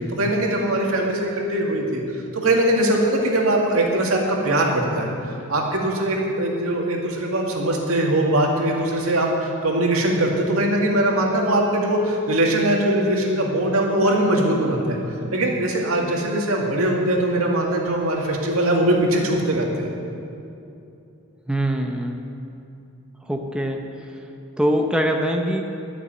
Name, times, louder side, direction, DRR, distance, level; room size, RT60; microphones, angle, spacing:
voice 1, 0.0-15.0 15.3-19.9, right 1 dB, 80° right, -1 dB, 2.1 m, -21 dB
voice 2, 21.5-22.2 23.3-23.9 24.6-25.6, equal, 5° right, 1 dB, 0.7 m, -23 dB
12.0 x 6.8 x 8.9 m, 2.7 s
head